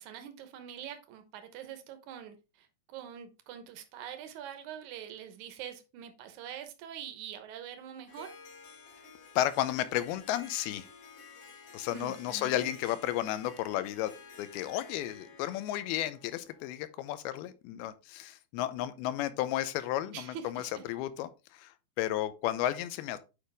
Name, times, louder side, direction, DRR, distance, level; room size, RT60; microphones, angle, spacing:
voice 1, 0.0-8.3 11.9-12.7 20.1-20.8, right 9 dB, 75° right, 8 dB, 1.8 m, -44 dB
Harp, 8.1-16.8, left 5 dB, 65° left, 4.0 m, -52 dB
voice 2, 9.4-10.9 11.7-20.6 20.9-23.2, left 13 dB, 80° left, 13 dB, 2.5 m, -33 dB
9.0 x 4.9 x 3.4 m, 0.29 s
omnidirectional pair, 4.7 m